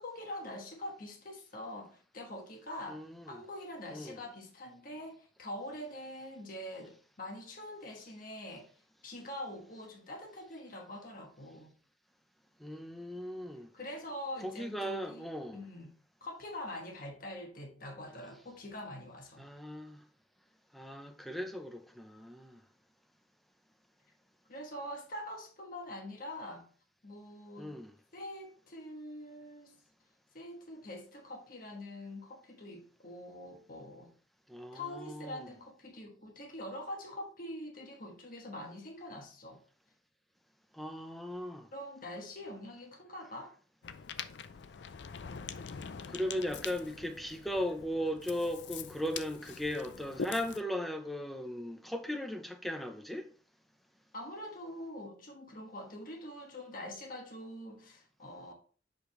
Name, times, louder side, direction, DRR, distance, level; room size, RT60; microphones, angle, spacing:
voice 1, 0.0-8.7 9.0-11.7 13.7-15.2 15.5-15.9 16.2-19.4 24.5-26.7 27.0-27.8 28.1-29.8 30.3-34.1 34.7-39.6 41.7-43.5 54.1-58.5, left 1 dB, 50° left, 1.4 m, -44 dB
voice 2, 2.9-3.4 3.9-4.2 12.6-13.7 14.4-15.6 19.4-20.0 20.7-22.6 27.6-27.9 34.5-35.5 40.7-41.7 46.1-53.3, equal, ahead, 0.7 m, -37 dB
Ocean, 43.8-50.6, left 6 dB, 65° left, 0.5 m, -44 dB
6.7 x 5.1 x 3.1 m
head